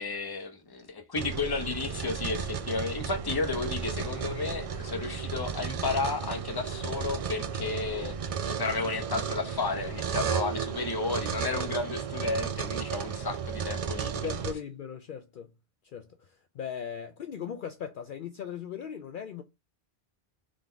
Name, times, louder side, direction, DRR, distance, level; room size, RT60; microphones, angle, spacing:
voice 1, 0.0-8.2 8.5-14.2, left 3 dB, 25° left, 0.8 m, -32 dB
sound 1, 1.2-14.5, right 7 dB, 50° right, 0.4 m, -34 dB
voice 2, 14.1-15.5 15.8-19.4, left 8 dB, 60° left, 0.7 m, -39 dB
3.8 x 3.7 x 3.4 m
omnidirectional pair, 1.1 m